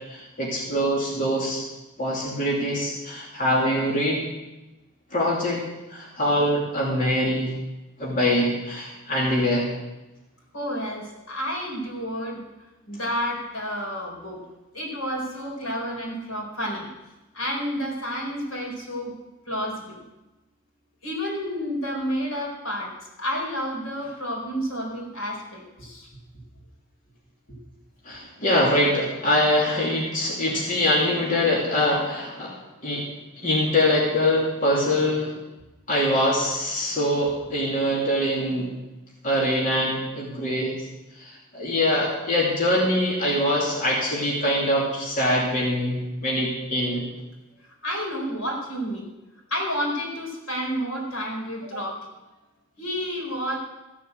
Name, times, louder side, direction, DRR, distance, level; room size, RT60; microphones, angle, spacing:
voice 1, 0.1-1.6 2.0-4.2 5.1-5.6 5.9-7.5 8.0-9.7 28.0-32.6 32.8-33.1 33.4-35.3 35.9-38.7 39.2-40.9 41.1-47.1, left 1 dB, 40° left, -5 dB, 2.7 m, -23 dB
voice 2, 10.5-12.4 12.9-14.4 14.7-16.9 17.3-19.1 19.5-20.0 21.0-22.9 23.2-26.1 47.8-49.1 49.5-52.0 52.8-53.6, equal, 75° left, -1 dB, 4.4 m, -30 dB
15.5 x 7.3 x 7.9 m, 1.0 s
head